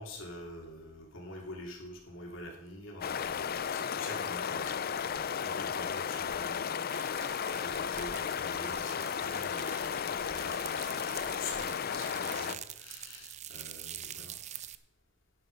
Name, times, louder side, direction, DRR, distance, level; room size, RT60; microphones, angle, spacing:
voice 1, 0.0-14.3, left 2 dB, 65° left, -1 dB, 3.2 m, -46 dB
sound 1, 3.0-12.6, left 7 dB, 45° left, 0.5 m, -34 dB
sound 2, 6.9-14.8, right 11 dB, 35° right, 0.5 m, -46 dB
11.0 x 10.5 x 5.5 m, 0.85 s
head